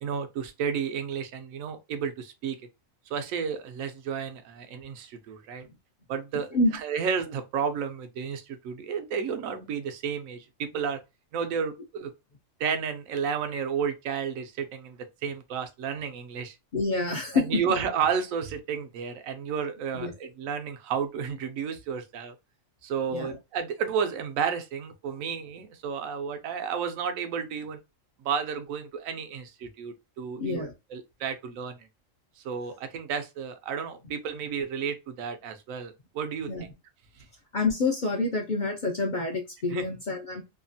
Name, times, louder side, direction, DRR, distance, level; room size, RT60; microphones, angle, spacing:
voice 1, 0.0-2.6 3.1-5.7 6.1-6.5 6.7-11.0 11.3-12.1 12.6-16.6 17.3-22.3 22.8-27.8 28.2-31.9 32.4-36.5 39.7-39.9, right 6 dB, 85° right, 1.0 m, -32 dB
voice 2, 16.7-17.6 19.9-20.1 23.1-23.4 30.4-30.7 36.5-36.7 37.5-40.4, left 3 dB, 50° left, 0.6 m, -27 dB
2.8 x 2.3 x 2.6 m
omnidirectional pair, 1.4 m